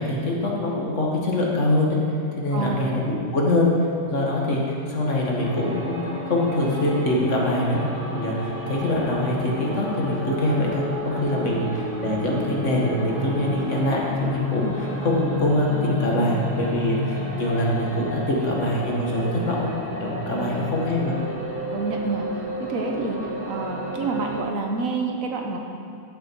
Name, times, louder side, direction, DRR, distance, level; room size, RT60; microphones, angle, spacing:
voice 1, 0.0-2.0 2.4-3.7 4.1-19.7 20.0-21.2, left 1 dB, 60° left, -3 dB, 2.0 m, -24 dB
voice 2, 2.5-3.0 11.4-11.7 14.6-14.8 20.3-20.7 21.7-22.4 22.7-25.6, right 3 dB, 75° right, 2 dB, 1.5 m, -29 dB
sound 1, 5.4-24.4, left 2 dB, 10° left, 1.1 m, -31 dB
15.0 x 6.6 x 4.7 m, 2.6 s
omnidirectional pair, 1.5 m